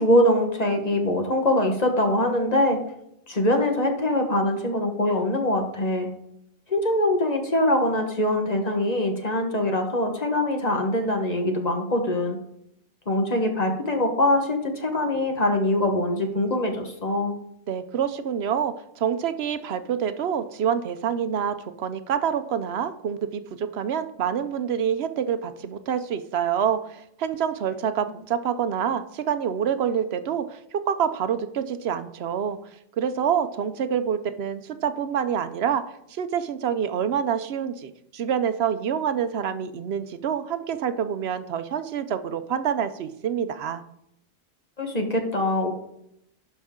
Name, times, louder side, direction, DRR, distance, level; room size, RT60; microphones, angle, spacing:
voice 1, 0.0-2.8 3.3-6.1 6.7-12.4 13.1-17.4 44.8-45.7, left 1 dB, 40° left, 3 dB, 1.4 m, -23 dB
voice 2, 17.7-32.6 33.0-35.8 36.1-43.8, right 8 dB, 85° right, 11 dB, 0.9 m, -27 dB
11.5 x 5.4 x 3.7 m, 0.76 s
omnidirectional pair, 1.0 m